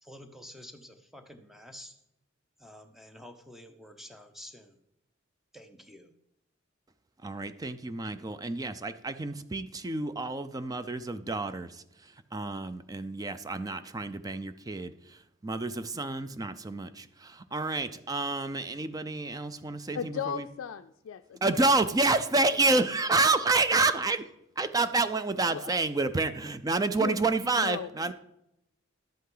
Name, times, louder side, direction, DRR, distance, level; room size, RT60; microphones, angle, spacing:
voice 1, 0.0-2.0 2.6-4.8 5.5-6.1, equal, ahead, 6 dB, 0.8 m, -49 dB
voice 2, 7.2-20.4 21.4-24.2 24.6-28.1, right 3 dB, 20° right, 12 dB, 0.4 m, -29 dB
voice 3, 19.9-21.6 25.5-25.8 27.0-27.2 27.5-27.9, left 7 dB, 80° left, 8 dB, 0.4 m, -36 dB
11.5 x 8.3 x 3.8 m, 0.85 s
head